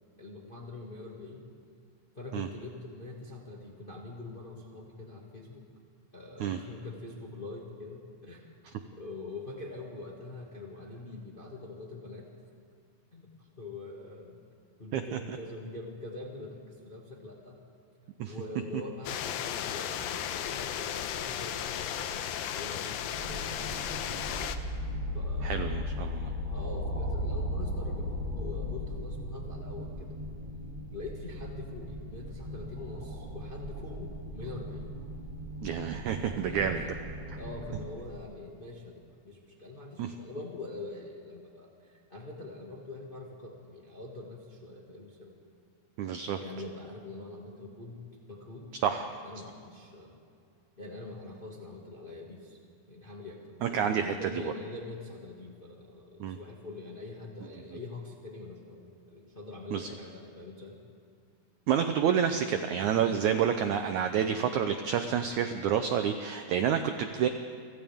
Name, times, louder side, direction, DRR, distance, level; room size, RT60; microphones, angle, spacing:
voice 1, 0.2-1.5 2.1-5.7 6.1-8.5 8.9-12.3 13.1-13.3 13.6-14.4 14.8-17.6 18.3-23.9 25.1-25.7 26.5-30.1 30.9-34.9 36.2-36.9 37.3-45.3 46.4-50.2 50.8-52.6 52.9-60.8 62.9-63.2, left 2 dB, 25° left, -2 dB, 1.3 m, -44 dB
sound 1, 19.1-24.6, left 9 dB, 75° left, 2.4 m, -35 dB
sound 2, 23.1-37.9, left 1 dB, 15° right, 2.8 m, -37 dB
voice 2, 25.4-26.3 35.6-36.8 40.0-40.1 46.0-46.4 48.8-49.2 53.6-54.5 56.2-56.4 59.7-59.9 61.7-67.3, right 8 dB, 80° right, 7 dB, 1.7 m, -29 dB
29.5 x 25.0 x 3.6 m, 2.3 s
omnidirectional pair, 4.2 m